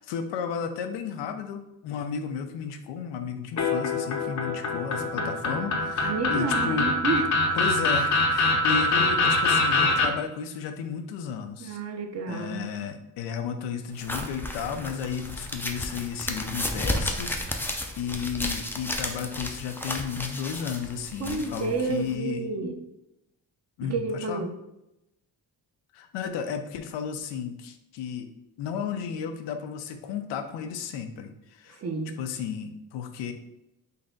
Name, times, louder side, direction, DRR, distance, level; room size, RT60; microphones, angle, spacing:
voice 1, 0.0-7.0 7.5-11.8 12.3-22.5 23.8-24.5 25.9-28.3 28.6-31.8 32.2-33.3, left 7 dB, 90° left, 8 dB, 0.6 m, -33 dB
dub ringtone, 3.6-10.1, left 2 dB, 45° left, 0.7 m, -24 dB
voice 2, 5.2-7.3 11.6-12.7 21.2-22.8 23.8-24.5 31.8-32.2, right 3 dB, 40° right, 5 dB, 0.7 m, -31 dB
sound 1, 14.0-22.1, left 1 dB, 5° left, 0.5 m, -33 dB
4.0 x 2.2 x 3.8 m, 0.87 s
cardioid pair, 75°, 42 cm